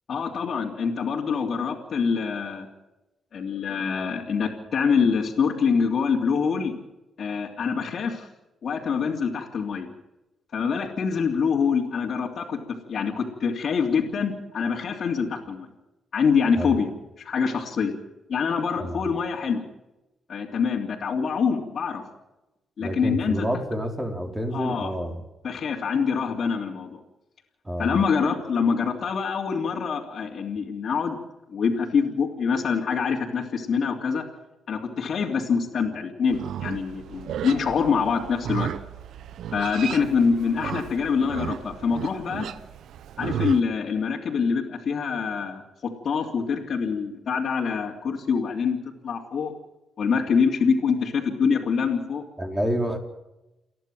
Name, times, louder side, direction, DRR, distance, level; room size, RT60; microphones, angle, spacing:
voice 1, 0.1-2.7 3.3-6.8 7.2-8.3 8.6-9.9 10.5-15.7 16.1-17.9 18.3-19.6 20.3-22.0 22.8-23.5 24.5-24.9 25.4-27.0 27.8-31.2 31.5-34.3 34.7-38.7 39.5-42.5 43.2-48.8 49.0-49.5 50.0-52.2, left 6 dB, 55° left, -4 dB, 3.2 m, -25 dB
voice 2, 22.8-25.1 27.6-27.9 52.4-53.0, equal, 15° right, 3 dB, 4.2 m, -28 dB
Livestock farm animals working animals, 36.3-43.6, right 9 dB, 80° right, 0.8 m, -34 dB
29.5 x 11.0 x 7.9 m, 0.96 s
cardioid pair, 100°, 0 cm